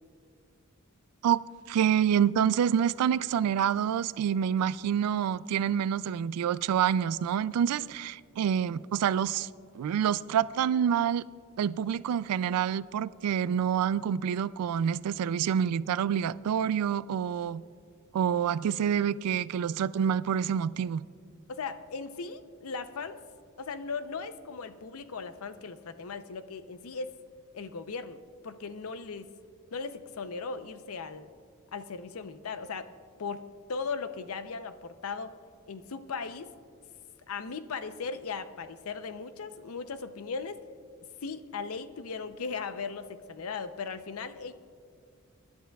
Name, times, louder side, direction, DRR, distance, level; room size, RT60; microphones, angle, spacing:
voice 1, 1.7-9.5 9.8-11.2 11.6-17.6 18.1-21.0, right 8 dB, 90° right, 0.3 m, -27 dB
voice 2, 21.5-23.2 23.6-27.1 27.5-29.3 29.7-31.3 31.7-32.9 33.2-35.3 35.7-36.5 37.3-40.6 41.2-44.5, left 5 dB, 70° left, 0.6 m, -38 dB
24.0 x 11.5 x 2.3 m
head